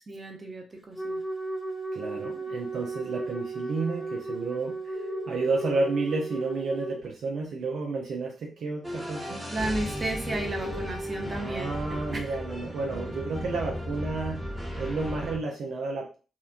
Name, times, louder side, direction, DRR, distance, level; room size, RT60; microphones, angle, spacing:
voice 1, 0.1-1.2 9.5-12.4, right 2 dB, 35° right, 2 dB, 0.8 m, -34 dB
Wind instrument woodwind instrument, 0.9-7.0, right 3 dB, 25° left, 0.6 m, -35 dB
voice 2, 1.9-9.5 11.4-14.5 14.8-16.2, right 3 dB, 65° right, 0 dB, 0.4 m, -31 dB
sound 1, 4.9-5.8 7.0-7.1 10.5-10.9, left 5 dB, 85° left, 0.9 m, -38 dB
sound 2, 8.8-15.4, equal, 10° right, 1.0 m, -35 dB
2.8 x 2.1 x 2.5 m, 0.34 s
hypercardioid pair, 40°, 0 cm